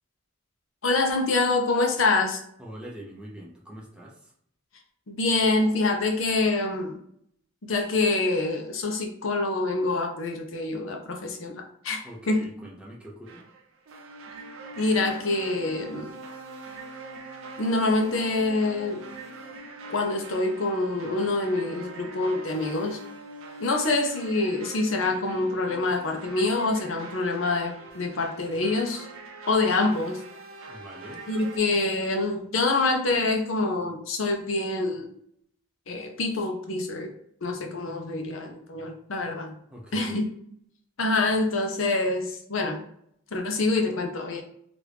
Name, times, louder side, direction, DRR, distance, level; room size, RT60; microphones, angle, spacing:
voice 1, 0.8-2.4 5.1-7.0 7.7-12.4 14.8-16.1 17.6-19.0 19.9-23.0 23.6-29.1 29.5-30.2 31.3-35.1 35.9-37.1 37.4-39.6 39.9-40.3 41.0-42.8 43.3-44.4, left 2 dB, 75° left, 3 dB, 0.6 m, -26 dB
voice 2, 2.6-4.3 12.0-13.4 30.7-31.2 39.7-40.2, right 1 dB, 5° right, -4 dB, 0.6 m, -43 dB
sound 1, 13.3-31.6, right 2 dB, 80° right, 0.6 m, -43 dB
2.9 x 2.5 x 3.4 m, 0.68 s
head